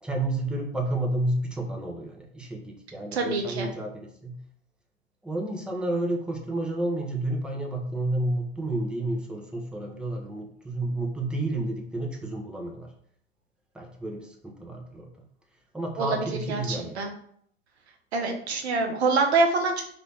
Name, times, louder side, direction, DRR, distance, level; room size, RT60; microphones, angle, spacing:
voice 1, 0.0-4.4 5.2-12.9 13.7-15.1 15.7-16.9, right 1 dB, 5° right, 0 dB, 0.9 m, -30 dB
voice 2, 3.1-3.7 16.0-17.1 18.1-19.8, right 3 dB, 85° right, 3 dB, 0.8 m, -25 dB
3.9 x 2.9 x 3.5 m, 0.64 s
hypercardioid pair, 90°, 32 cm